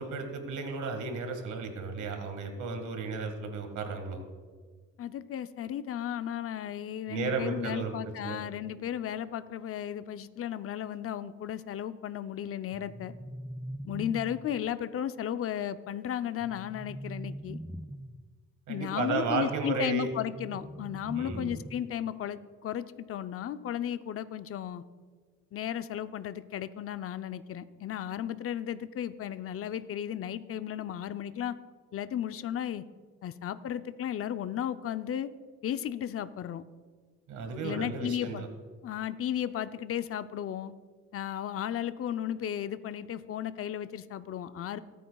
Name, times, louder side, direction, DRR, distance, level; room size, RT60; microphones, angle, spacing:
voice 1, 0.0-4.2 7.1-7.9 8.2-8.4 18.7-20.1 21.2-21.5 37.3-38.5, right 4 dB, 75° right, 5 dB, 1.9 m, -33 dB
voice 2, 5.0-13.1 13.9-17.6 18.7-24.8 25.5-31.5 31.9-32.8 33.2-35.3 35.6-36.6 37.6-38.5 38.8-40.7 41.1-44.8, left 10 dB, 50° left, 11 dB, 0.6 m, -34 dB
sound 1, 12.7-14.7 16.4-18.3 20.1-22.1, equal, ahead, 0.3 m, -42 dB
25.5 x 9.3 x 2.3 m, 1.5 s
cardioid pair, 90°, 30 cm